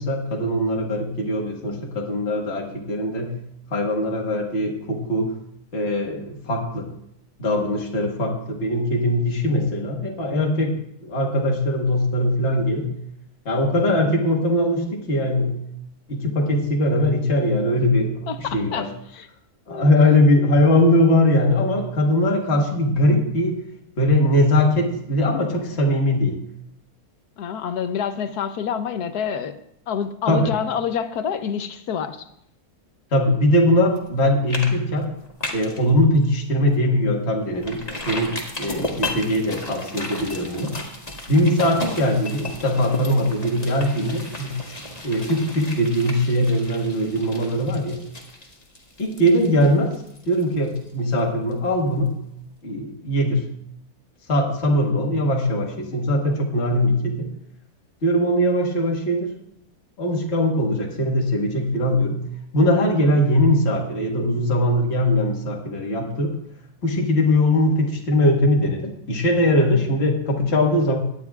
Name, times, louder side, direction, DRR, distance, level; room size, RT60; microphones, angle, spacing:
voice 1, 0.0-3.4 3.7-5.3 5.7-6.9 7.4-10.8 11.0-12.9 13.5-15.6 16.1-18.9 19.7-23.6 24.0-26.4 30.3-30.5 33.1-35.1 35.5-40.7 41.3-44.6 45.0-48.0 49.0-50.0 50.3-52.2 52.6-53.5 54.3-57.3 58.0-59.3 60.0-62.2 62.5-66.3 66.8-71.0, left 1 dB, 45° left, -1 dB, 1.8 m, -21 dB
voice 2, 18.3-18.9 19.1-19.3 19.7-19.9 27.4-29.6 29.9-32.2, left 7 dB, 75° left, 9 dB, 1.3 m, -27 dB
sound 1, 34.0-34.2 34.5-34.7 35.0-35.8 36.2-36.3 36.7-36.8 37.6-51.2 51.5-51.6, left 2 dB, 25° left, 1.8 m, -34 dB
18.0 x 11.5 x 2.4 m, 0.74 s
omnidirectional pair, 1.7 m